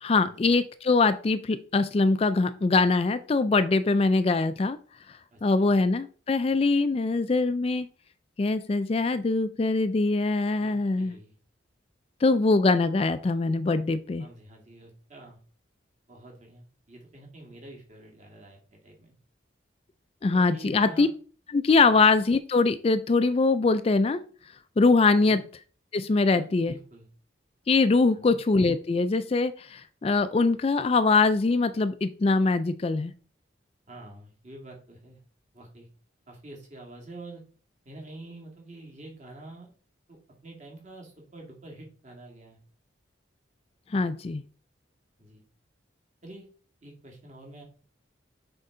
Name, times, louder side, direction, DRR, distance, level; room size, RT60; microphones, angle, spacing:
voice 1, 0.0-4.8 5.1-7.9 8.4-11.2 12.2-14.2 20.2-21.1 21.5-24.2 24.8-25.4 25.9-26.7 27.7-33.1 43.9-44.4, left 3 dB, 30° left, 12 dB, 0.3 m, -23 dB
voice 2, 5.3-5.7 10.6-11.3 14.2-15.4 16.1-19.1 20.3-21.1 21.9-22.1 25.2-25.5 26.3-27.1 28.1-28.4 33.9-35.2 35.5-35.9 36.3-37.4 37.9-39.7 40.1-42.6 45.2-45.4 46.2-46.5 46.8-47.6, right 2 dB, 40° right, -1 dB, 2.2 m, -47 dB
6.6 x 4.6 x 3.8 m, 0.40 s
head